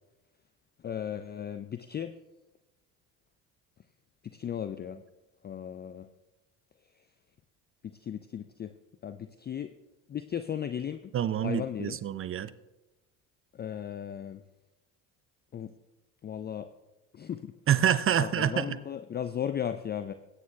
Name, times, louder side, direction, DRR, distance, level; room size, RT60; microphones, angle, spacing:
voice 1, 0.8-2.1 4.3-5.0 5.4-6.1 7.8-8.7 9.0-9.7 10.1-11.1 11.4-12.0 13.5-14.4 15.5-15.7 16.2-16.7 17.1-17.5 18.2-20.1, left 9 dB, 25° left, 10 dB, 0.4 m, -36 dB
voice 2, 11.1-12.5 17.7-18.8, right 10 dB, 30° right, 16 dB, 0.5 m, -27 dB
20.0 x 9.3 x 2.3 m, 1.0 s
hypercardioid pair, 60°, 44 cm